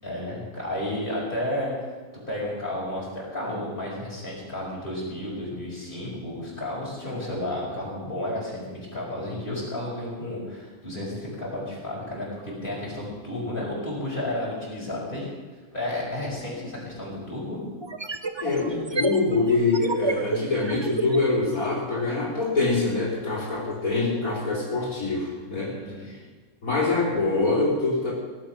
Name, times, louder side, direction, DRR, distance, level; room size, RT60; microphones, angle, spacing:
voice 1, 0.0-1.9 2.3-15.3 15.7-17.6 25.7-26.1, left 1 dB, 35° left, -5 dB, 5.6 m, -32 dB
sound 1, 16.4-16.5 17.8-21.8, right 4 dB, 25° right, 0.6 m, -31 dB
voice 2, 18.4-25.7 26.0-26.2 26.6-28.1, left 3 dB, 75° left, -6 dB, 4.3 m, -24 dB
17.5 x 11.5 x 6.1 m, 1.4 s
omnidirectional pair, 1.5 m